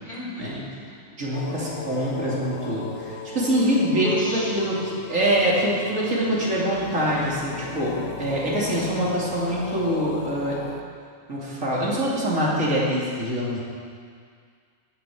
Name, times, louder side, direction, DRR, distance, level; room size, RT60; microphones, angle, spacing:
voice 1, 0.0-1.1 4.0-4.5, equal, 40° left, -5 dB, 3.5 m, -34 dB
voice 2, 1.2-10.6 11.3-13.6, right 1 dB, 75° right, -6 dB, 3.2 m, -24 dB
sound 1, 1.3-10.8, left 5 dB, 70° left, 1.2 m, -36 dB
16.0 x 7.9 x 6.5 m, 2.1 s
omnidirectional pair, 1.4 m